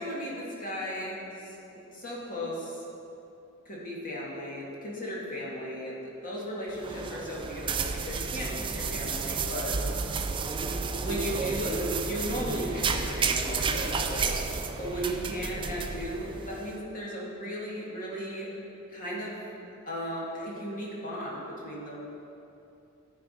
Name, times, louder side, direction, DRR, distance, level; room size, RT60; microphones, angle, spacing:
voice 1, 0.0-2.8 3.7-9.8 11.0-14.5 14.8-18.5 18.9-19.4 19.8-22.0, equal, 40° left, -5 dB, 2.0 m, -36 dB
sound 1, 6.7-16.7, right 4 dB, 20° right, 0.4 m, -31 dB
12.5 x 4.7 x 5.4 m, 2.8 s
head